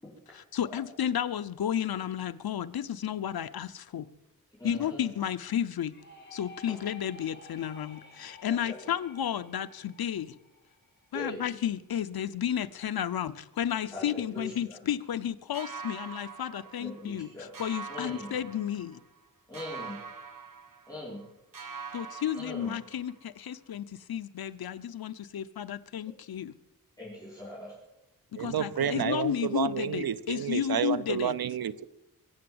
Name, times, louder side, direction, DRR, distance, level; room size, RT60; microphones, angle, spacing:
voice 1, 0.3-4.1 4.6-5.9 6.3-10.4 11.1-17.3 17.6-19.0 21.9-26.5 28.3-31.3, left 9 dB, 90° left, 0.7 m, -32 dB
voice 2, 4.5-5.1 8.5-8.7 11.1-11.4 13.9-14.8 16.8-17.5 17.9-18.3 19.5-20.0 20.9-21.2 22.3-22.7 27.0-27.7, left 1 dB, 10° left, 5.1 m, -41 dB
sound 1, 5.9-11.5, left 2 dB, 30° left, 5.2 m, -53 dB
sound 2, 15.5-17.2 17.5-19.2 19.5-21.3 21.5-23.2, right 5 dB, 65° right, 2.1 m, -44 dB
voice 3, 28.4-31.8, right 8 dB, 85° right, 0.7 m, -30 dB
23.0 x 7.8 x 7.9 m
wide cardioid pair, 85°, 35 cm